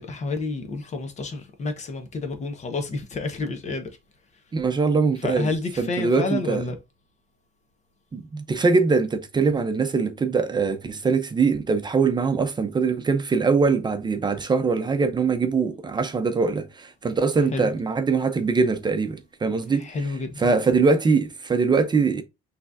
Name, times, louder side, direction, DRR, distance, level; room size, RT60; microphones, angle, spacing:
voice 1, 0.0-3.9 5.2-6.7 17.5-17.7 19.8-20.5, left 3 dB, 45° left, 1.3 m, -29 dB
voice 2, 4.5-5.5 5.8-6.6 8.1-19.8 20.4-22.2, right 4 dB, 25° right, 0.7 m, -22 dB
5.9 x 3.3 x 2.6 m
cardioid pair, 110°, 17 cm